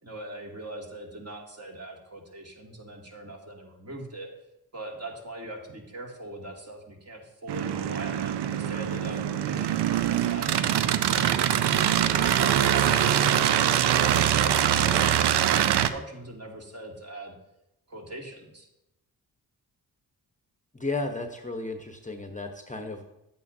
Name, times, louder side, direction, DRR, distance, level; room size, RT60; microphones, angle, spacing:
voice 1, 0.0-4.3 4.7-10.7 11.1-11.4 11.8-17.4 17.9-18.7, right 1 dB, 40° right, -1 dB, 2.4 m, -41 dB
sound 1, 7.5-15.9, right 10 dB, 85° right, 0.6 m, -23 dB
voice 2, 20.7-23.0, left 2 dB, 20° left, 5 dB, 1.0 m, -33 dB
10.5 x 8.5 x 2.7 m, 0.87 s
cardioid pair, 55°, 39 cm